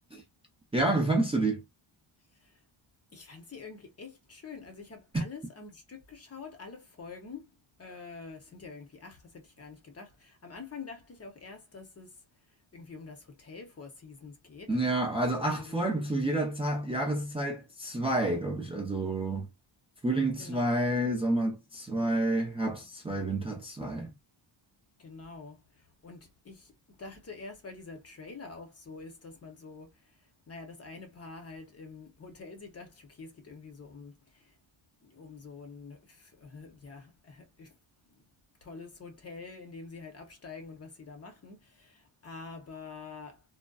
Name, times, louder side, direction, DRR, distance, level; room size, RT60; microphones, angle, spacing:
voice 1, 0.7-1.6 5.1-5.2 14.7-19.5 20.0-24.1, right 1 dB, 10° right, 0.5 m, -29 dB
voice 2, 3.1-7.5 7.8-12.2 12.7-14.7 15.5-15.8 20.4-20.8 25.0-30.2 30.5-34.5 35.0-37.8 38.1-38.2 38.6-43.4, left 4 dB, 30° left, 0.8 m, -47 dB
2.6 x 2.1 x 2.2 m
cardioid pair, 125°, 49 cm